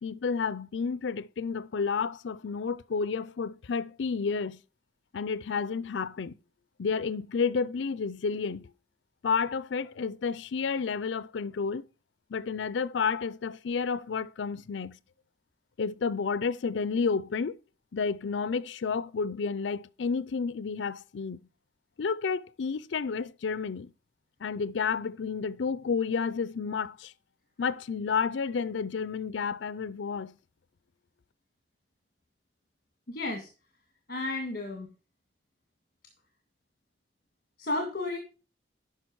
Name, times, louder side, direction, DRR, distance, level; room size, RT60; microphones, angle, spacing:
voice 1, 0.0-4.6 5.1-6.3 6.8-8.7 9.2-11.8 12.3-15.0 15.8-17.6 17.9-21.4 22.0-23.9 24.4-27.1 27.6-30.4, left 5 dB, 80° left, 0.5 m, -31 dB
voice 2, 33.1-33.5 34.1-34.9 37.6-38.2, left 2 dB, 50° left, 1.9 m, -32 dB
10.5 x 5.8 x 4.7 m
head